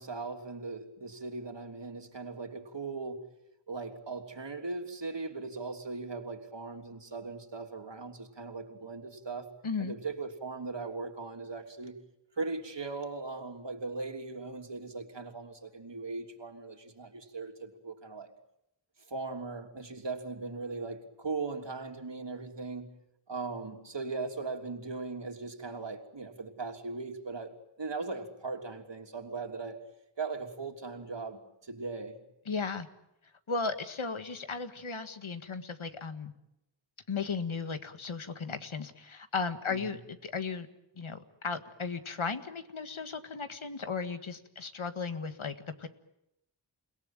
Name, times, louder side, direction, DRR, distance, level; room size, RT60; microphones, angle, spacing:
voice 1, 0.0-3.3 3.7-9.5 9.8-12.0 12.4-18.3 19.1-22.9 23.3-29.8 30.2-32.2 39.7-40.0, right 3 dB, 60° right, 3.2 m, -39 dB
voice 2, 9.6-9.9 32.5-32.9 33.5-36.3 37.1-40.7 41.0-45.9, left 4 dB, 75° left, 1.8 m, -36 dB
29.5 x 17.5 x 9.1 m
wide cardioid pair, 45°, 48 cm